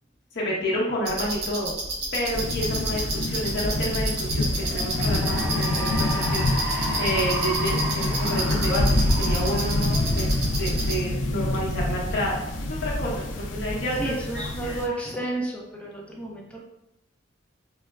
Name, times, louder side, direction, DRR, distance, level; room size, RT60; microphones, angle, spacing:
voice 1, 0.3-1.7 2.1-10.3 10.6-14.9, equal, 60° left, -3 dB, 0.9 m, -30 dB
sound 1, 1.1-10.9, right 2 dB, 60° right, 1.0 m, -31 dB
sound 2, 2.3-14.9, left 1 dB, 90° left, 0.5 m, -27 dB
Cheering / Applause, 4.5-11.2, right 1 dB, 15° right, 1.2 m, -33 dB
voice 2, 13.9-16.6, right 2 dB, 5° left, -2 dB, 0.6 m, -32 dB
4.5 x 2.1 x 2.3 m, 0.87 s
head